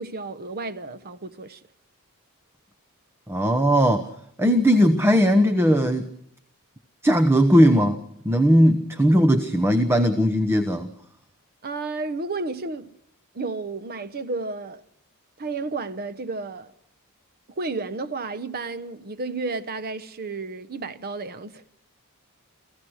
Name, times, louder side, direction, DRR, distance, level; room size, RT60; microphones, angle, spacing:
voice 1, 0.0-1.6 11.6-12.9 13.3-14.8 15.4-16.7 17.6-21.6, right 3 dB, 45° right, 0.9 m, -32 dB
voice 2, 3.3-4.1 4.4-6.1 7.0-8.0 8.2-10.9, equal, 10° right, 1.0 m, -18 dB
28.0 x 15.5 x 6.4 m
head